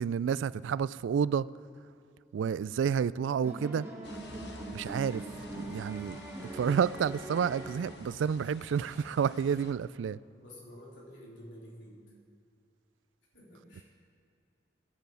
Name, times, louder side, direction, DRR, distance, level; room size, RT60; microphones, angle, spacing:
voice 1, 0.0-1.5 2.3-3.9 4.7-5.2 5.5-6.2 6.5-10.2, right 7 dB, 85° right, 0.3 m, -30 dB
sound 1, 3.4-8.3, right 2 dB, 15° right, 1.4 m, -43 dB
sound 2, 4.0-9.7, left 2 dB, 65° left, 1.0 m, -50 dB
Bass guitar, 5.7-9.4, left 3 dB, 30° left, 3.6 m, -59 dB
voice 2, 10.3-12.1 13.3-13.8, equal, 85° left, 3.2 m, -50 dB
12.5 x 9.0 x 7.0 m
head